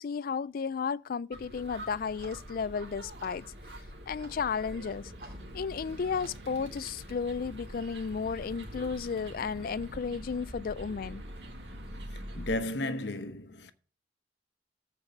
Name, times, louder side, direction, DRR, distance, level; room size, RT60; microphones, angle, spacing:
voice 1, 0.0-3.4 4.1-5.1 5.5-11.2, left 5 dB, 55° left, 0.4 m, -33 dB
sound 1, 1.3-12.6, equal, 75° right, 2.2 m, -44 dB
Clock, 1.8-7.2, right 1 dB, 60° right, 2.4 m, -55 dB
voice 2, 12.3-13.7, left 1 dB, 80° left, 1.0 m, -33 dB
14.0 x 4.7 x 5.3 m
head